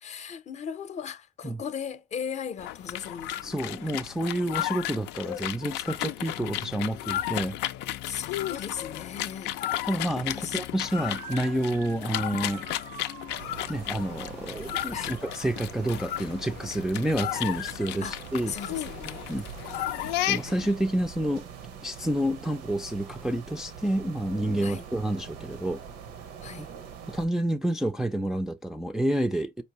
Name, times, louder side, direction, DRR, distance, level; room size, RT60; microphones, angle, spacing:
voice 1, 0.0-3.5 8.0-9.5 10.3-10.6 14.9-15.2 18.0-18.2 18.5-19.2 24.6-24.8 26.4-26.7, left 7 dB, 40° left, 0.6 m, -37 dB
sound 1, 2.6-20.8, left 14 dB, 90° left, 0.4 m, -34 dB
voice 2, 3.4-7.6 9.9-12.7 13.7-18.5 19.3-19.5 20.2-21.4 21.8-25.8 26.6-26.7 27.1-29.6, right 1 dB, 5° right, 0.3 m, -29 dB
Motor vehicle (road) / Siren, 10.8-16.1, right 6 dB, 55° right, 0.6 m, -47 dB
sound 2, 13.3-27.3, right 7 dB, 85° right, 0.8 m, -43 dB
4.5 x 2.6 x 2.9 m
cardioid pair, 110°, 17 cm